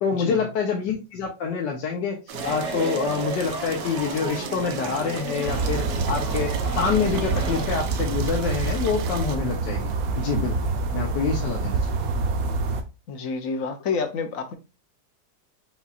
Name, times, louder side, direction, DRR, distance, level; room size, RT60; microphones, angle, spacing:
voice 1, 0.0-9.9 10.2-10.6 10.9-11.8, left 5 dB, 80° left, 0 dB, 1.5 m, -26 dB
sound 1, 2.3-7.7, right 2 dB, 25° right, 1.8 m, -33 dB
sound 2, 2.3-9.4, right 9 dB, 80° right, 1.2 m, -39 dB
sound 3, 5.5-12.8, right 4 dB, 65° right, 1.1 m, -26 dB
voice 2, 13.1-14.5, left 5 dB, 60° left, 7 dB, 1.1 m, -28 dB
5.5 x 4.1 x 2.4 m, 0.29 s
omnidirectional pair, 1.9 m